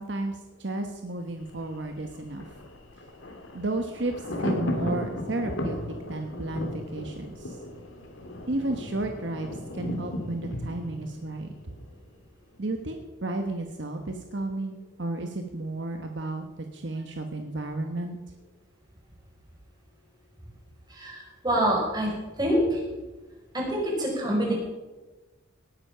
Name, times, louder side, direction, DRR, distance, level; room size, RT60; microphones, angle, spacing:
voice 1, 0.0-2.5 3.5-4.1 4.4-5.8 6.0-7.6 8.5-11.5 12.6-18.2, right 2 dB, 60° right, 5 dB, 1.2 m, -33 dB
Thunder, 1.3-12.3 12.6-12.7, left 1 dB, 80° left, 2.7 m, -36 dB
voice 2, 20.9-22.1 22.4-22.8 23.5-24.5, right 1 dB, 20° right, -2 dB, 5.0 m, -26 dB
18.5 x 10.5 x 5.7 m, 1.2 s
head